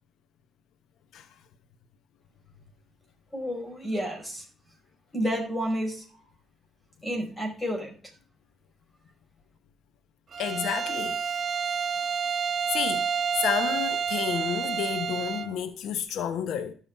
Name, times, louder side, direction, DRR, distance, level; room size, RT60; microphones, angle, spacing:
voice 1, 3.3-4.4 5.1-6.0 7.0-7.9, equal, 15° left, 5.1 m, -30 dB
Bowed string instrument, 10.3-15.6, right 7 dB, 50° right, 1.2 m, -29 dB
voice 2, 10.4-11.2 12.7-13.0 13.3-16.7, left 9 dB, 80° left, 1.0 m, -30 dB
13.0 x 5.9 x 5.8 m
cardioid pair, 90°, 0 cm